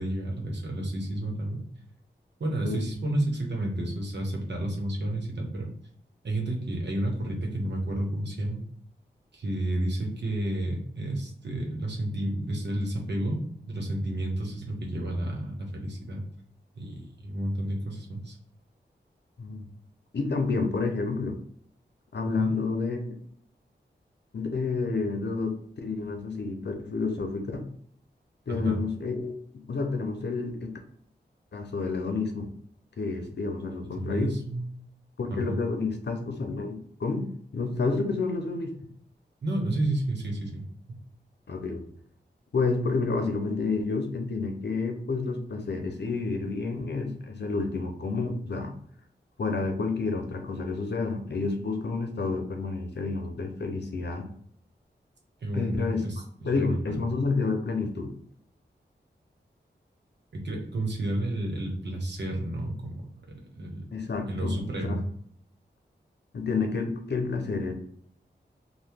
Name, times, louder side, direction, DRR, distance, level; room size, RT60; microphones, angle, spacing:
voice 1, 0.0-1.7 2.4-5.7 6.2-8.6 9.3-13.4 13.7-16.2 16.7-18.4 22.4-22.5 28.5-28.8 34.0-34.7 35.3-35.6 39.4-40.6 40.9-41.0 55.4-57.0 60.3-63.0 63.5-63.8 64.3-65.0, right 1 dB, 65° right, 0 dB, 1.0 m, -31 dB
voice 2, 20.1-21.4 22.1-23.0 24.3-27.6 28.5-29.4 29.7-30.8 31.5-32.5 33.0-34.3 35.2-38.7 41.5-41.8 42.5-48.7 49.4-54.3 55.5-56.1 56.4-58.1 63.9-65.0 66.3-67.7, left 4 dB, 65° left, 5 dB, 0.7 m, -29 dB
2.8 x 2.2 x 3.5 m, 0.63 s
cardioid pair, 55°, 19 cm